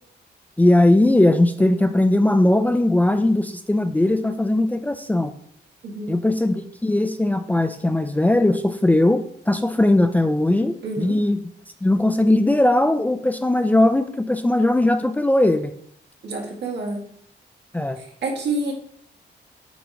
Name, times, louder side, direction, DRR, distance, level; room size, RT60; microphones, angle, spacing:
voice 1, 0.6-5.3 6.1-11.4 11.8-15.7 17.7-18.0, left 1 dB, 10° left, 8 dB, 0.4 m, -19 dB
voice 2, 10.8-11.2 16.2-17.0 18.0-18.7, right 2 dB, 75° right, -1 dB, 1.9 m, -28 dB
9.1 x 3.0 x 4.8 m, 0.63 s
wide cardioid pair, 145°, 18 cm